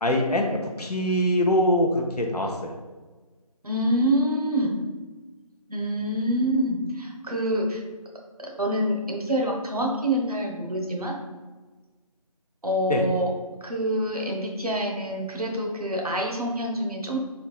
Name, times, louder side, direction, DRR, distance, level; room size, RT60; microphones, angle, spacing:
voice 1, 0.0-2.7 12.9-13.0, left 1 dB, 80° left, 1 dB, 0.7 m, -23 dB
voice 2, 3.6-4.8 5.7-7.8 8.4-11.2 12.6-13.3 13.6-17.2, equal, 70° right, 0 dB, 0.9 m, -26 dB
4.3 x 3.4 x 2.3 m, 1.3 s
figure-of-eight pair, 180°, 20 cm